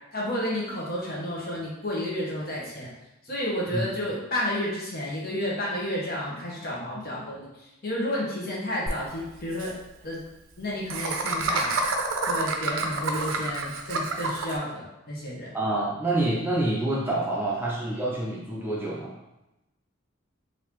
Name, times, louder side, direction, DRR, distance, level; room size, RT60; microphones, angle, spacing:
voice 1, 0.1-2.9 3.3-7.5 7.8-9.7 10.0-10.2 10.6-11.8 12.3-15.5, left 1 dB, 50° left, -5 dB, 1.1 m, -31 dB
Laughter, 8.9-9.0 9.2-9.3 9.5-9.7 10.9-14.6, right 3 dB, 85° right, 0.5 m, -28 dB
voice 2, 15.5-19.1, right 2 dB, 10° right, -5 dB, 0.5 m, -27 dB
3.9 x 2.7 x 2.9 m, 0.97 s
head